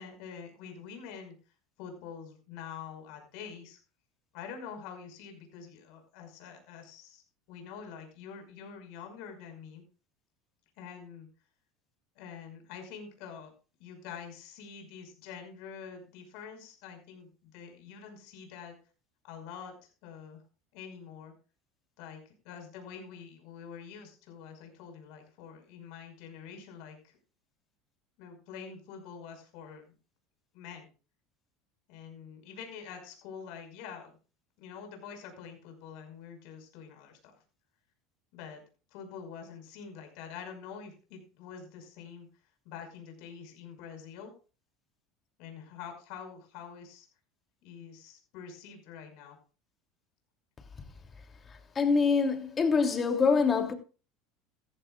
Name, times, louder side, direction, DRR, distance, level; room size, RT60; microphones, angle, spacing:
voice 1, 0.0-1.4 1.8-3.8 4.3-7.2 7.5-9.8 10.8-11.3 12.2-13.5 13.8-18.8 19.2-20.4 20.7-21.3 22.0-27.2 28.2-29.9 30.5-30.9 31.9-34.1 34.6-37.3 38.3-38.6 38.9-42.3 42.6-44.3 45.4-47.1 47.6-49.4, left 7 dB, 65° left, 5.6 m, -46 dB
voice 2, 51.5-53.7, left 5 dB, 30° left, 3.0 m, -25 dB
15.0 x 15.0 x 2.5 m
hypercardioid pair, 85°, 0 cm